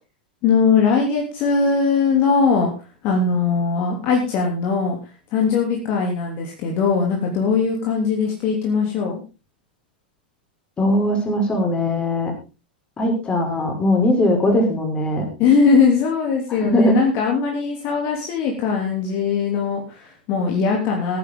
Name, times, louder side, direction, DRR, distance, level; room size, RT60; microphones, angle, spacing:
voice 1, 0.4-2.7 3.0-5.0 5.3-9.2 15.4-21.2, left 5 dB, 45° left, 0 dB, 3.1 m, -20 dB
voice 2, 10.8-12.3 13.0-15.3 16.6-17.0, left 1 dB, 20° left, 2 dB, 5.2 m, -20 dB
18.0 x 9.7 x 3.9 m, 0.32 s
figure-of-eight pair, 95°, 5 cm